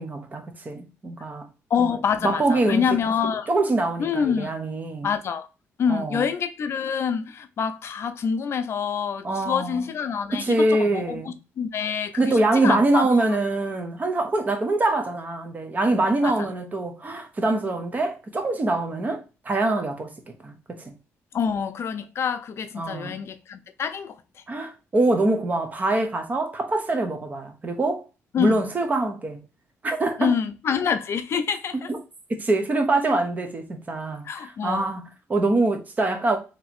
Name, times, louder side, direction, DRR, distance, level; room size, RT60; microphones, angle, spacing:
voice 1, 0.0-1.5 1.8-1.9 2.2-2.8 3.5-5.1 5.9-6.3 9.2-9.8 10.3-11.3 12.2-20.9 22.8-23.2 24.5-28.0 28.4-29.4 29.8-30.3 31.9-32.0 32.3-36.4, right 2 dB, 30° right, 1.0 m, -24 dB
voice 2, 1.7-3.5 4.0-4.5 5.0-5.5 5.8-13.1 16.2-16.5 21.3-24.2 28.3-28.6 30.2-31.9 34.2-35.0, left 7 dB, 55° left, 0.6 m, -26 dB
3.2 x 3.0 x 4.3 m
cardioid pair, 100°, 5 cm